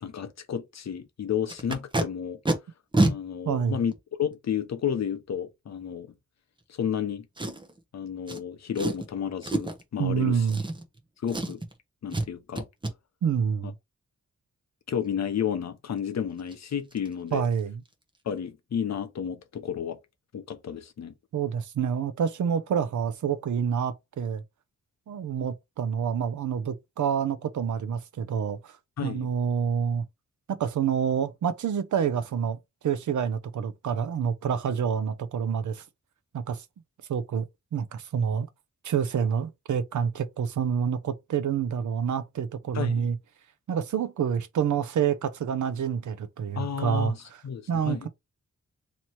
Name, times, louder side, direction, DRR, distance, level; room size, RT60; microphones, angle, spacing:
voice 1, 0.0-2.4 3.0-3.9 4.2-6.1 6.7-7.3 7.9-10.4 11.2-11.6 12.0-12.6 14.9-17.4 18.3-20.0 20.3-21.1 29.0-29.3 42.7-43.1 46.6-47.2 47.4-48.1, left 8 dB, 65° left, 0.8 m, -31 dB
Packing tape duct tape, 1.5-2.0 2.4-2.5 2.9-3.1 3.9-4.0 7.4-7.8 8.3-8.4 8.7-9.1 9.4-9.8 10.4-11.0 11.3-11.7 12.1-12.3 12.5-12.9 16.0-16.1 16.4-16.5 16.9-17.1 17.3-17.6 17.8-17.9, right 2 dB, 15° right, 0.7 m, -27 dB
voice 2, 3.5-3.8 10.0-10.6 13.2-13.7 17.3-17.8 21.3-24.4 25.1-28.8 29.0-30.0 30.5-32.6 32.8-35.8 36.3-36.6 37.1-37.5 37.7-38.5 38.8-43.2 43.7-47.1 47.7-48.1, right 7 dB, 80° right, 0.6 m, -27 dB
3.0 x 2.9 x 4.3 m
wide cardioid pair, 170°, 30 cm